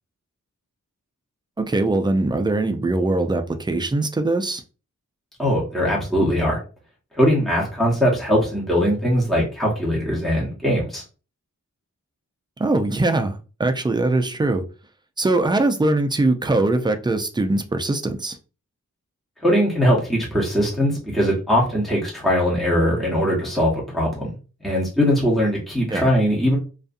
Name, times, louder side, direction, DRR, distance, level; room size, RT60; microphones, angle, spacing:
voice 1, 1.6-4.6 12.6-14.6 15.2-18.4 25.9-26.1, right 2 dB, 15° right, 0.3 m, -21 dB
voice 2, 5.4-6.6 7.1-11.0 19.4-24.3 24.6-26.6, equal, ahead, 0.8 m, -20 dB
2.5 x 2.4 x 2.5 m
wide cardioid pair, 65°, 32 cm